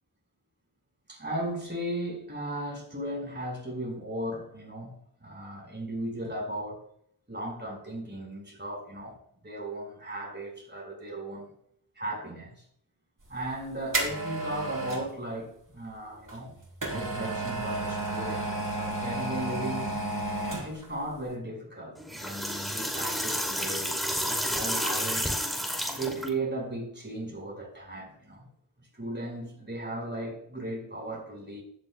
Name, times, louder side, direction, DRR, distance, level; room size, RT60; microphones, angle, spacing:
voice 1, 1.1-4.9 5.2-6.8 7.3-11.5 11.9-12.6 13.3-16.5 16.9-19.9 20.6-25.3 25.9-28.5 28.9-31.6, right 1 dB, 25° right, 0 dB, 5.1 m, -36 dB
Dental chair servo switch, 13.3-15.1 16.3-20.9 21.3-21.4, right 2 dB, 55° right, 4.9 m, -32 dB
sound 1, 22.0-26.3, equal, ahead, 2.4 m, -30 dB
16.0 x 11.5 x 2.3 m, 0.67 s
wide cardioid pair, 70°, 41 cm